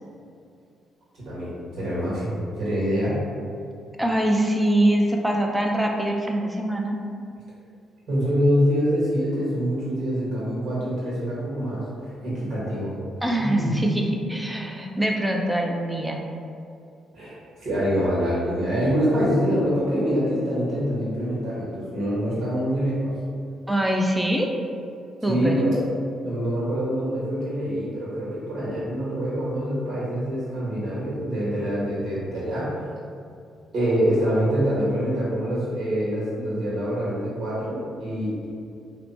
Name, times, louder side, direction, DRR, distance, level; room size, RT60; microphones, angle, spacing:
voice 1, 1.2-3.2 8.1-11.8 12.2-12.9 13.4-13.7 17.1-23.1 25.3-25.8 26.2-32.7 33.7-38.5, equal, 55° right, -8 dB, 1.5 m, -25 dB
voice 2, 4.0-7.0 13.2-16.2 23.7-24.5 25.2-25.6, right 1 dB, 10° right, 1 dB, 0.6 m, -23 dB
3.0 x 2.1 x 4.2 m, 2.4 s
hypercardioid pair, 50°, 0 cm